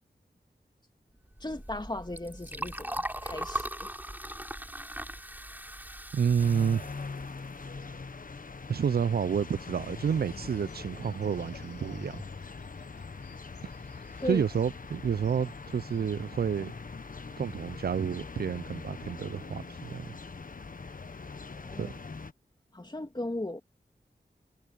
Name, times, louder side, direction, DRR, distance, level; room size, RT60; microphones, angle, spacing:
Liquid, 1.3-8.0, right 1 dB, 10° right, 4.3 m, -39 dB
voice 1, 1.4-3.9 14.2-14.4 21.5-21.9 22.7-23.6, left 1 dB, 25° left, 2.8 m, -36 dB
voice 2, 6.1-6.8 8.7-12.2 14.3-16.7 17.4-20.1 21.8-21.9, right 7 dB, 65° right, 0.5 m, -29 dB
sound 1, 6.4-22.3, left 4 dB, 55° left, 1.3 m, -42 dB
Bird vocalization bird call bird song, 9.5-19.6, left 5 dB, 85° left, 4.1 m, -57 dB
cardioid pair, 45°, 17 cm